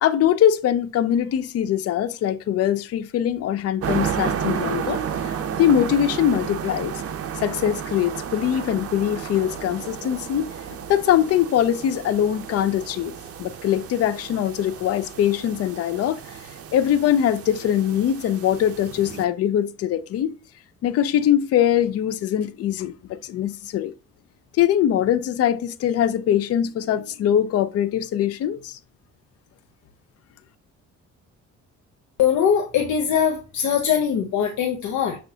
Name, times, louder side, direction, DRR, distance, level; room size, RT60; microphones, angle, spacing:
voice 1, 0.0-7.0 7.4-10.5 10.9-16.2 16.7-20.4 20.8-23.9 24.6-28.8, left 10 dB, 55° left, 0.4 m, -22 dB
sound 1, 3.8-19.2, right 8 dB, 50° right, 0.6 m, -32 dB
voice 2, 32.2-35.2, left 8 dB, 75° left, 0.8 m, -21 dB
5.9 x 2.5 x 2.7 m
cardioid pair, 90°, 30 cm